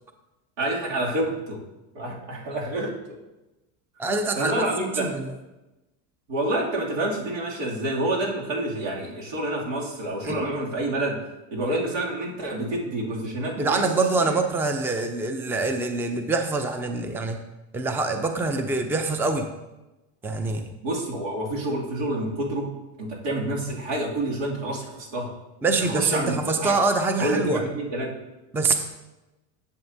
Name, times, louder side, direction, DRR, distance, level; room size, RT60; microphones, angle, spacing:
voice 1, 0.6-1.6 1.9-2.9 4.4-5.1 6.3-11.2 11.5-13.8 20.8-22.7 23.0-25.3 25.9-26.4 26.6-26.8 27.2-28.1, right 1 dB, 90° right, -3 dB, 2.7 m, -28 dB
voice 2, 4.0-5.3 10.2-10.4 13.6-17.4 17.7-19.5 20.2-20.6 25.6-27.6 28.5-28.8, right 3 dB, 5° right, 7 dB, 0.4 m, -25 dB
11.0 x 7.1 x 2.7 m, 1.0 s
supercardioid pair, 125°, 39 cm